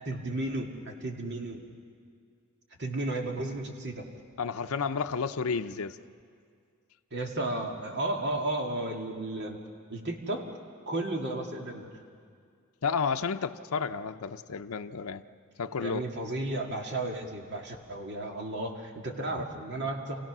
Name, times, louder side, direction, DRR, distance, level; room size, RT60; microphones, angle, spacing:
voice 1, 0.1-1.6 2.8-4.1 7.1-9.6 9.9-10.4 10.9-11.9 15.8-20.3, right 2 dB, 55° right, 2 dB, 2.1 m, -33 dB
voice 2, 4.4-6.0 12.8-15.2 15.6-16.0, left 5 dB, 85° left, 7 dB, 0.6 m, -31 dB
28.5 x 17.0 x 6.1 m, 2.2 s
head